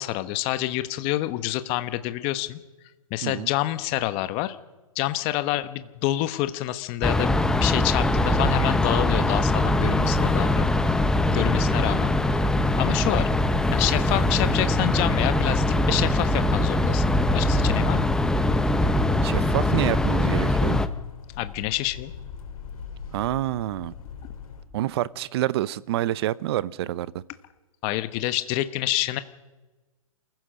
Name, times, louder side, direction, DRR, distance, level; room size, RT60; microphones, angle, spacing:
voice 1, 0.0-2.6 3.1-4.6 4.9-10.7 11.3-12.1 12.8-13.3 13.7-17.0 17.3-18.1 21.4-22.1 27.8-29.2, left 16 dB, 30° left, 12 dB, 1.1 m, -27 dB
sound 1, 7.0-20.9, left 1 dB, 5° left, 0.7 m, -22 dB
sound 2, 13.3-24.6, left 6 dB, 75° left, 4.4 m, -41 dB
voice 2, 19.2-20.8 23.1-23.9 24.7-27.1, right 14 dB, 45° right, 20 dB, 0.7 m, -27 dB
27.5 x 15.5 x 6.5 m, 1.2 s
hypercardioid pair, 140°, 18 cm